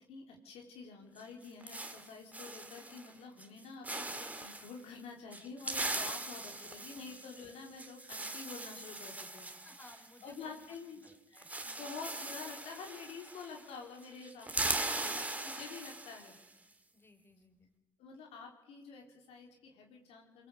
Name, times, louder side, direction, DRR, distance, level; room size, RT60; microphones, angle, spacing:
voice 1, 0.0-9.5 10.2-11.0 11.3-11.4 11.7-16.4 18.0-20.5, left 5 dB, 80° left, 1 dB, 4.0 m, -48 dB
sound 1, 1.2-3.1 3.4-3.6 3.8-4.7 5.3-10.8 11.0-11.1 11.4-13.8 14.0-16.4, right 2 dB, 15° right, 2.1 m, -40 dB
voice 2, 6.3-6.8 9.6-11.5 16.9-17.7, left 2 dB, 20° left, 6 dB, 4.4 m, -60 dB
24.0 x 18.0 x 8.3 m, 1.1 s
cardioid pair, 80°, 10 cm